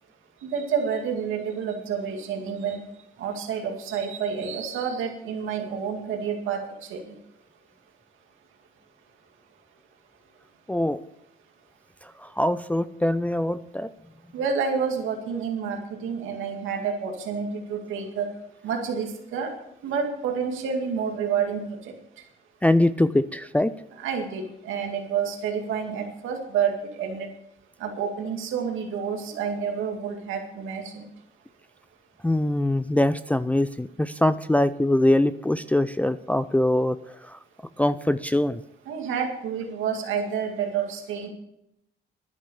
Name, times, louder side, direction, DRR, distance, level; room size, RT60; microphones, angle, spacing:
voice 1, 0.4-2.8 3.2-6.6 6.9-7.0 14.3-18.3 18.6-19.5 19.8-21.9 24.0-27.3 27.8-31.0 38.9-41.3, right 6 dB, 85° right, 2 dB, 2.2 m, -29 dB
voice 2, 10.7-11.0 12.0-13.9 22.6-23.7 32.2-37.4 37.8-38.6, left 1 dB, 5° left, 12 dB, 0.4 m, -23 dB
10.5 x 10.5 x 6.9 m, 0.80 s
cardioid pair, 90°, 20 cm